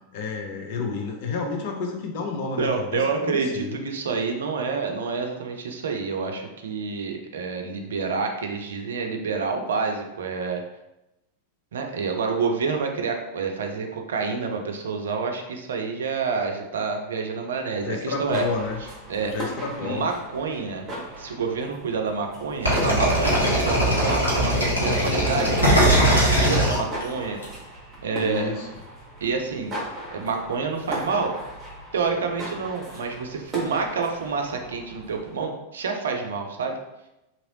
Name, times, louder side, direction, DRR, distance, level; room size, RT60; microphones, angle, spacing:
voice 1, 0.1-3.8 17.8-18.8 19.3-20.1 28.2-28.7, left 4 dB, 50° left, 1 dB, 0.6 m, -30 dB
voice 2, 2.6-10.6 11.7-18.4 19.1-19.3 19.8-20.9 21.2-27.4 28.0-28.5 29.2-29.7 30.1-31.3 31.9-36.8, right 5 dB, 65° right, 3 dB, 0.4 m, -28 dB
sound 1, 18.1-35.4, right 1 dB, 20° right, 1.1 m, -38 dB
sound 2, 22.6-27.4, equal, 80° left, 1.3 m, -20 dB
2.9 x 2.9 x 2.8 m, 0.92 s
figure-of-eight pair, 90°, 0 cm